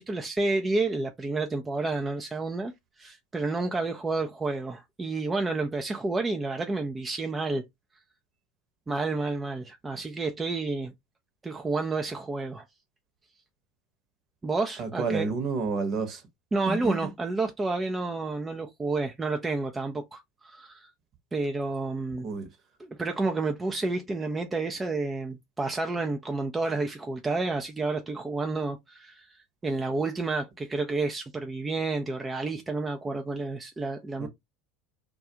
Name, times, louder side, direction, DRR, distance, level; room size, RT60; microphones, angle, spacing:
voice 1, 0.0-2.7 3.0-7.6 8.9-10.9 11.4-12.6 14.4-15.3 16.5-20.9 21.3-22.3 22.8-34.3, right 3 dB, 20° right, 0.4 m, -30 dB
voice 2, 14.8-16.2 16.6-17.1 22.1-22.5 34.2-34.3, right 4 dB, 45° right, 1.0 m, -30 dB
2.3 x 2.3 x 2.8 m
hypercardioid pair, 85°, 0 cm